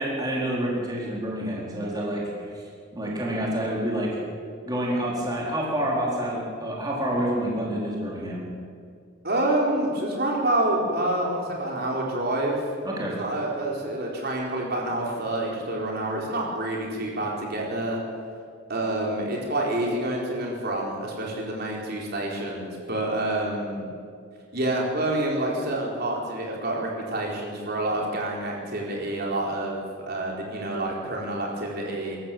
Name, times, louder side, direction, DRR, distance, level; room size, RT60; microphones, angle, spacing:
voice 1, 0.0-2.6 2.9-4.2 4.6-8.4 12.8-13.2, right 1 dB, 20° right, -4 dB, 4.3 m, -28 dB
voice 2, 9.2-12.6 13.2-18.0 18.7-23.9 24.5-32.2, right 1 dB, 50° right, -2 dB, 4.3 m, -28 dB
27.0 x 14.5 x 7.7 m, 2.2 s
head